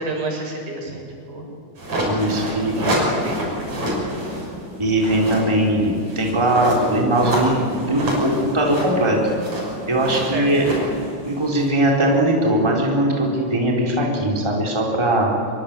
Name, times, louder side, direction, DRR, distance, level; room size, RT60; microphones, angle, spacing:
voice 1, 0.0-1.5 2.4-4.1 10.2-10.5, right 3 dB, 75° right, 0 dB, 6.9 m, -31 dB
sound 1, 1.8-4.5 4.8-11.9, equal, 45° right, 7.9 m, -27 dB
voice 2, 2.1-2.8 4.8-9.2 9.9-10.8 11.3-15.3, right 1 dB, 5° right, -1 dB, 4.0 m, -20 dB
sound 2, 2.4-11.1, left 3 dB, 55° left, 8.0 m, -38 dB
25.0 x 23.0 x 8.8 m, 2.4 s
omnidirectional pair, 4.2 m